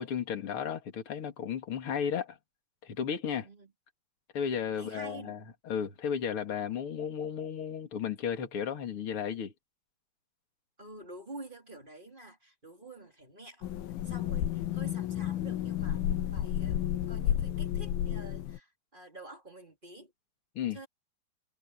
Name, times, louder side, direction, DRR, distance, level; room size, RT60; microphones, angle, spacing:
voice 1, 0.0-2.4 2.8-3.5 4.3-9.5 20.5-20.9, left 7 dB, 40° left, 3.0 m, -34 dB
voice 2, 4.7-5.3 10.8-13.7 14.0-16.0 16.3-16.8 17.1-20.1 20.7-20.9, right 2 dB, 15° right, 3.7 m, -48 dB
sound 1, 13.6-18.6, left 11 dB, 75° left, 2.9 m, -31 dB
omnidirectional pair, 4.4 m